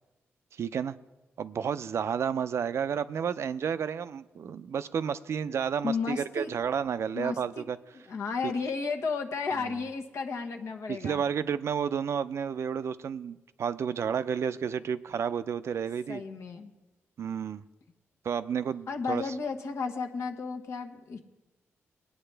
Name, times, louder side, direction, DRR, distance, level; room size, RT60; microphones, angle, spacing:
voice 1, 0.6-1.0 1.4-7.8 8.4-8.5 9.6-9.8 10.9-16.2 17.2-17.6 18.2-19.2, right 7 dB, 65° right, 13 dB, 0.4 m, -31 dB
voice 2, 5.8-6.5 7.1-7.7 8.1-11.2 16.1-16.7 18.9-21.2, left 4 dB, 75° left, 3 dB, 1.2 m, -33 dB
18.5 x 9.5 x 3.3 m, 1.1 s
cardioid pair, 80°, 5 cm